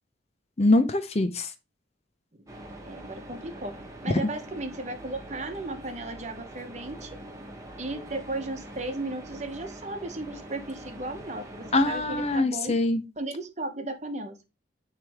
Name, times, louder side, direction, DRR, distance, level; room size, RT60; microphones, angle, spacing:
voice 1, 0.6-1.5 11.7-13.0, left 2 dB, 35° left, 10 dB, 0.6 m, -23 dB
sound 1, 2.5-12.4, right 1 dB, 15° right, 1.2 m, -43 dB
voice 2, 2.9-3.7 4.0-7.2 7.8-12.7 13.2-14.4, right 2 dB, 35° right, 6 dB, 1.0 m, -35 dB
9.3 x 3.4 x 3.5 m, 0.27 s
head